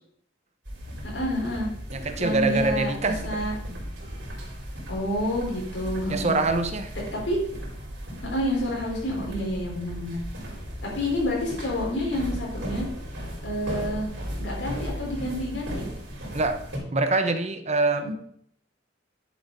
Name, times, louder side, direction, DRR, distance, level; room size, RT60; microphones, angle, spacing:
sound 1, 0.6-16.8, equal, 75° right, 4.6 m, -36 dB
voice 1, 1.1-1.7 2.2-3.5 4.9-6.4 7.2-7.4 8.3-10.2 10.8-12.8 13.4-14.1 14.4-15.8 18.0-18.1, equal, 80° left, -2 dB, 4.4 m, -28 dB
voice 2, 1.9-3.5 6.1-6.9 16.3-16.6 16.9-18.1, right 3 dB, 40° right, 8 dB, 0.9 m, -25 dB
10.5 x 7.9 x 4.0 m, 0.66 s
head